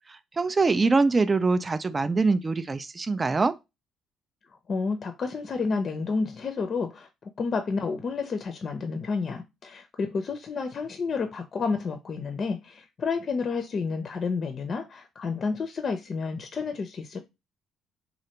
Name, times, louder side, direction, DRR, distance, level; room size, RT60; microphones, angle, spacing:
voice 1, 0.1-3.5, right 3 dB, 30° right, 0.3 m, -24 dB
voice 2, 4.7-17.2, left 4 dB, 45° left, 0.5 m, -30 dB
3.2 x 2.5 x 2.8 m
hypercardioid pair, 50°, 0 cm